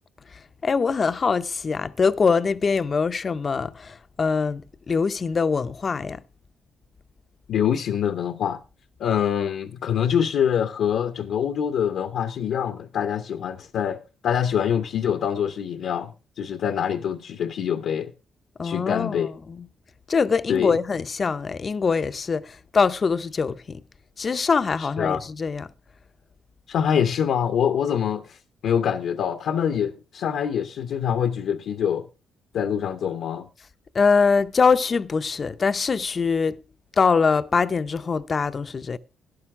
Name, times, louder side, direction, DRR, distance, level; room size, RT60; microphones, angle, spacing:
voice 1, 0.6-6.2 18.6-19.2 19.5-19.7 20.1-23.8 24.2-25.7 33.9-36.6 37.0-39.0, left 5 dB, 40° left, 0.6 m, -23 dB
voice 2, 7.5-8.6 9.0-18.1 18.6-19.3 20.5-20.8 24.8-25.2 26.7-32.1 32.5-33.5, left 8 dB, 70° left, 0.8 m, -25 dB
12.5 x 11.0 x 3.6 m
cardioid pair, 90°, 0 cm